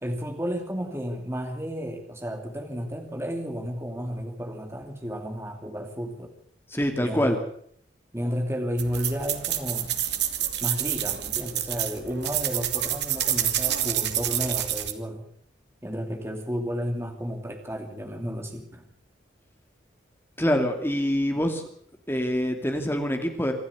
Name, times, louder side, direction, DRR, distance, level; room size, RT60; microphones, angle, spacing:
voice 1, 0.0-6.3 7.0-7.4 8.1-10.0 10.6-15.3 15.8-18.9, equal, 15° right, 4 dB, 2.8 m, -32 dB
voice 2, 6.7-7.4 20.4-21.6 22.1-23.5, equal, 10° left, 5 dB, 2.7 m, -25 dB
sound 1, 8.8-14.9, right 11 dB, 60° right, 2.4 m, -28 dB
26.0 x 12.5 x 8.3 m, 0.64 s
head